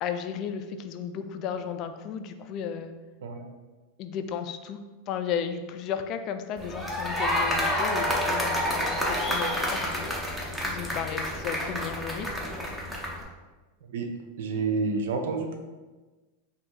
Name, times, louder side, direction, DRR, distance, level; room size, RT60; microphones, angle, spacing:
voice 1, 0.0-2.9 4.0-4.8 5.1-10.1 10.6-12.3, left 7 dB, 40° left, 8 dB, 0.3 m, -34 dB
sound 1, 6.6-13.2, left 1 dB, 5° right, 0.7 m, -29 dB
voice 2, 14.4-15.6, right 4 dB, 75° right, 3 dB, 0.7 m, -29 dB
4.7 x 2.7 x 3.8 m, 1.2 s
supercardioid pair, 145°, 0 cm